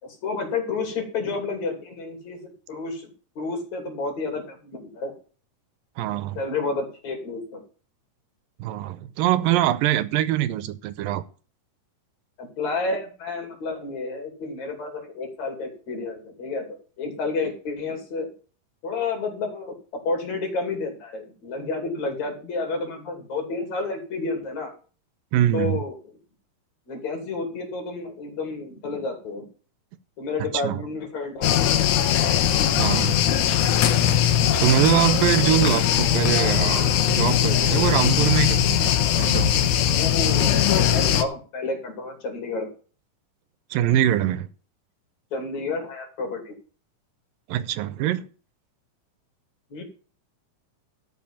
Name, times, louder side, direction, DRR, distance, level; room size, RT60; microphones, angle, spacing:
voice 1, 0.0-3.1 3.4-5.1 6.4-7.6 12.4-16.6 17.0-18.3 18.8-24.7 25.5-26.0 26.9-29.5 30.2-31.8 34.4-34.8 39.9-42.7 45.3-46.5 49.7-49.8, left 3 dB, 55° left, 3.9 m, -30 dB
voice 2, 6.0-6.4 8.6-11.2 25.3-25.8 30.4-30.8 32.8-33.5 34.6-38.9 39.2-39.5 43.7-44.5 47.5-48.3, right 12 dB, 85° right, 2.4 m, -23 dB
sound 1, 31.4-41.2, left 10 dB, 70° left, 2.2 m, -20 dB
12.5 x 5.8 x 7.1 m
omnidirectional pair, 4.0 m